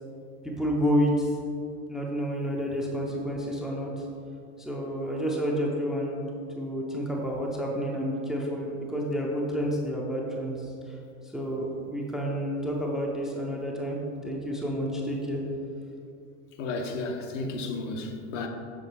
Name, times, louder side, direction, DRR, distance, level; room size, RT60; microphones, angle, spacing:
voice 1, 0.4-1.3 1.9-4.0 4.6-6.2 6.6-10.7 11.3-15.4, equal, ahead, -2 dB, 0.4 m, -29 dB
voice 2, 16.6-18.5, left 3 dB, 75° left, 4 dB, 0.9 m, -33 dB
6.8 x 3.6 x 4.2 m, 2.5 s
supercardioid pair, 130°, 38 cm